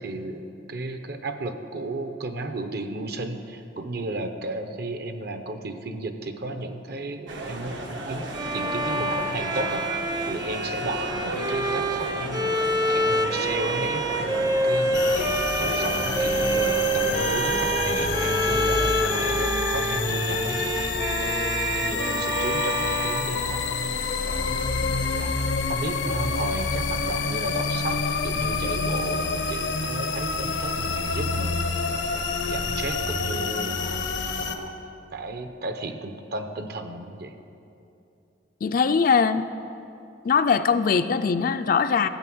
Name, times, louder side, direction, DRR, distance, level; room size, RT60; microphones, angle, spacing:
voice 1, 0.0-9.8 10.3-20.8 21.2-21.4 21.7-23.7 24.2-25.3 25.7-34.0 34.4-34.7 35.1-37.3, right 2 dB, 60° right, 7 dB, 0.8 m, -34 dB
sound 1, 7.3-19.4, right 1 dB, 85° right, 1.4 m, -34 dB
Bowed string instrument, 8.3-24.1, right 1 dB, 25° right, 0.6 m, -27 dB
sound 2, 14.9-34.6, left 4 dB, 85° left, 0.9 m, -27 dB
voice 2, 38.6-39.4 40.2-42.1, left 5 dB, 50° left, 10 dB, 0.4 m, -21 dB
13.0 x 8.6 x 6.2 m, 2.7 s
head